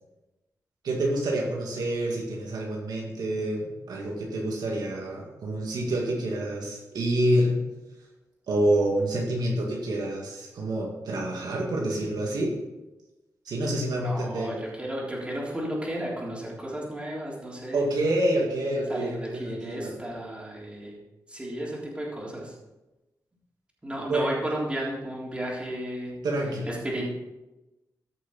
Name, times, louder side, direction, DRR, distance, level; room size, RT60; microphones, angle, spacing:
voice 1, 0.8-7.6 8.5-12.5 13.5-14.6 17.7-20.0 24.1-24.3 26.2-26.7, right 1 dB, 80° right, -1 dB, 2.0 m, -27 dB
voice 2, 14.0-17.9 18.9-20.9 21.3-22.5 23.8-26.1 26.6-27.0, right 1 dB, 15° right, -4 dB, 3.6 m, -33 dB
14.5 x 6.5 x 4.1 m, 1.0 s
cardioid pair, 85°, 7 cm